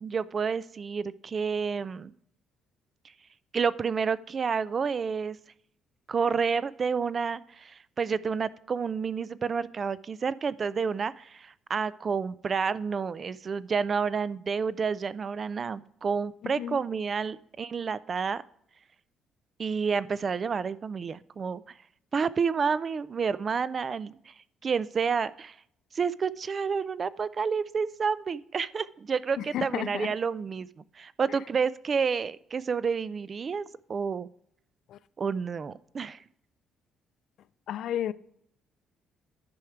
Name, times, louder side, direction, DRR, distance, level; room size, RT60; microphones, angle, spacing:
voice 1, 0.0-2.1 3.5-5.4 6.1-18.4 19.6-21.6 22.1-24.3 24.6-25.5 25.9-30.7 31.0-33.6 33.9-34.3 35.2-36.2, right 5 dB, 35° right, 0.3 m, -29 dB
voice 2, 16.4-16.8 29.4-30.1 34.9-35.0 37.7-38.1, left 11 dB, 65° left, 0.3 m, -32 dB
10.5 x 4.9 x 4.5 m
cardioid pair, 130°, 0 cm